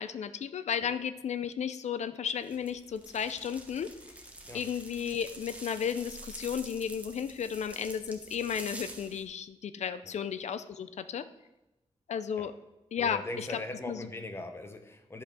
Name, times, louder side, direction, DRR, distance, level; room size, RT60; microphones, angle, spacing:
voice 1, 0.0-3.9 4.5-11.3 12.1-12.5 12.9-13.6 13.9-14.1, left 7 dB, 80° left, 13 dB, 0.5 m, -34 dB
sound 1, 2.4-9.2, right 1 dB, 10° right, 1.1 m, -47 dB
voice 2, 13.0-15.2, left 2 dB, 20° left, 7 dB, 0.9 m, -40 dB
10.5 x 5.8 x 6.2 m, 0.97 s
wide cardioid pair, 165°, 12 cm